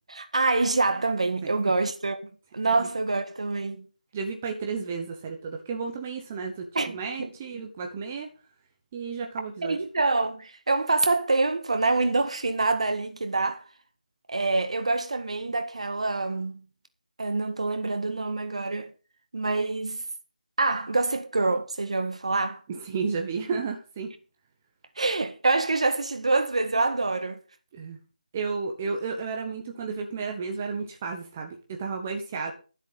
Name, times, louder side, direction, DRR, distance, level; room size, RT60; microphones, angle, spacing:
voice 1, 0.1-3.9 6.7-7.3 9.6-13.6 14.3-16.6 17.2-18.9 19.3-20.0 20.6-22.6 25.0-27.4, right 3 dB, 45° right, 1.7 m, -26 dB
voice 2, 1.4-1.7 2.8-2.9 4.1-8.3 8.9-9.8 22.7-24.1 27.7-28.0 28.3-32.5, right 5 dB, 10° right, 0.9 m, -32 dB
13.0 x 7.8 x 5.6 m
figure-of-eight pair, 175°, 5 cm